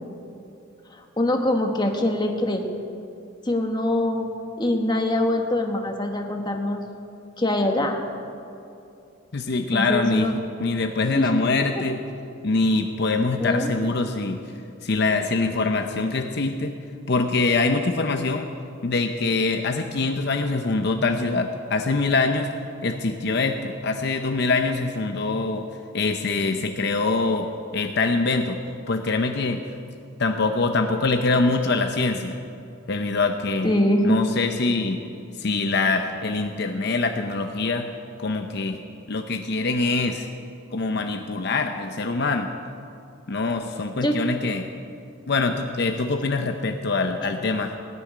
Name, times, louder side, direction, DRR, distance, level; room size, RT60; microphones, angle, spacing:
voice 1, 1.2-2.6 3.5-4.3 4.6-6.8 7.4-8.0 9.7-10.3 11.1-11.3 13.4-13.7 33.6-34.2 44.0-44.1, left 1 dB, 20° left, 3 dB, 1.3 m, -23 dB
voice 2, 9.3-10.3 10.6-12.0 12.4-14.4 14.8-16.7 17.1-18.5 18.8-22.5 22.8-25.6 25.9-28.6 28.9-29.6 30.2-32.4 32.9-33.7 34.0-35.0 35.4-37.9 38.2-38.8 39.1-40.3 40.7-42.5 43.3-44.7 45.3-47.7, left 3 dB, 55° left, 5 dB, 0.7 m, -24 dB
18.0 x 7.0 x 9.8 m, 2.7 s
head